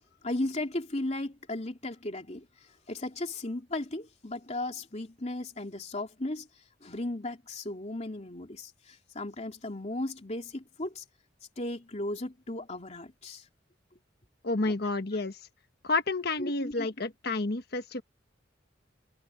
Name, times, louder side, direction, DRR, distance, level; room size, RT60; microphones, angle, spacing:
voice 1, 0.2-2.5 2.9-6.5 6.8-11.0 11.6-13.4 16.4-17.1, left 1 dB, 35° left, 3.0 m, -36 dB
voice 2, 14.4-15.4 15.8-18.0, left 3 dB, 55° left, 1.4 m, -30 dB
head